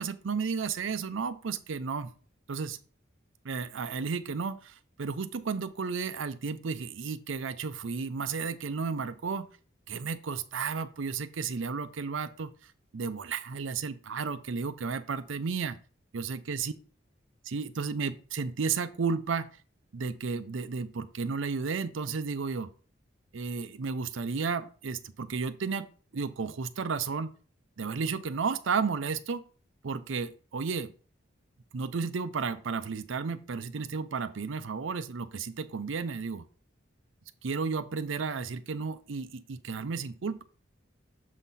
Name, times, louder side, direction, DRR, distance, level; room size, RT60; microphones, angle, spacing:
voice 1, 0.0-2.1 2.5-2.8 3.4-9.5 9.9-15.8 16.1-16.7 17.4-19.5 19.9-22.7 23.3-25.9 26.1-27.3 27.8-29.4 29.8-30.9 31.7-36.5 37.4-40.4, right 5 dB, 80° right, 12 dB, 0.5 m, -33 dB
7.2 x 3.9 x 4.1 m, 0.40 s
head